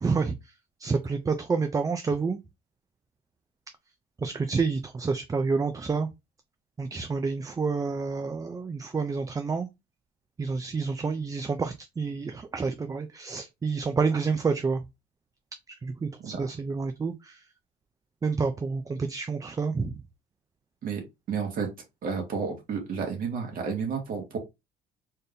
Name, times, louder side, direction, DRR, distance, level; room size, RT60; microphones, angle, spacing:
voice 1, 0.0-0.3 0.8-2.4 4.2-6.1 6.8-9.7 10.4-14.8 15.8-17.1 18.2-20.0, right 4 dB, 20° right, 0.5 m, -28 dB
voice 2, 21.3-21.7 22.0-24.4, right 6 dB, 55° right, 1.9 m, -31 dB
4.2 x 3.4 x 2.6 m
cardioid pair, 110°, 17 cm